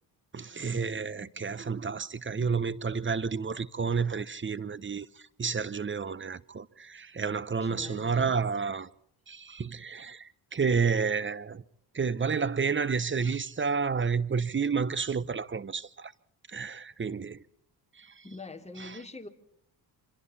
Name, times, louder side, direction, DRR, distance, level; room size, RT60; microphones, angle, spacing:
voice 1, 0.3-8.9 9.3-11.6 11.9-16.1 16.5-17.4 18.0-18.2 18.8-19.0, right 5 dB, 30° right, 1.0 m, -30 dB
voice 2, 7.6-8.3 18.2-19.3, left 3 dB, 15° left, 2.7 m, -44 dB
28.0 x 26.0 x 4.3 m
cardioid pair, 75°, 42 cm